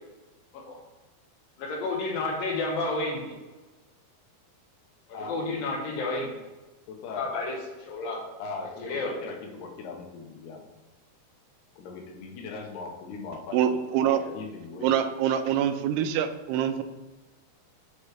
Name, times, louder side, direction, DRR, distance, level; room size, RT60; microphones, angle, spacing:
voice 1, 1.6-3.4 5.1-6.3 7.1-8.2 8.8-9.1, left 2 dB, 75° left, 0 dB, 2.5 m, -31 dB
voice 2, 5.1-5.4 6.9-7.4 8.4-10.6 11.8-13.8 14.0-14.9, left 4 dB, 90° left, 1 dB, 3.1 m, -39 dB
voice 3, 13.5-14.2 14.8-16.8, right 9 dB, 90° right, 8 dB, 2.6 m, -25 dB
8.1 x 4.8 x 3.2 m, 1.2 s
omnidirectional pair, 4.5 m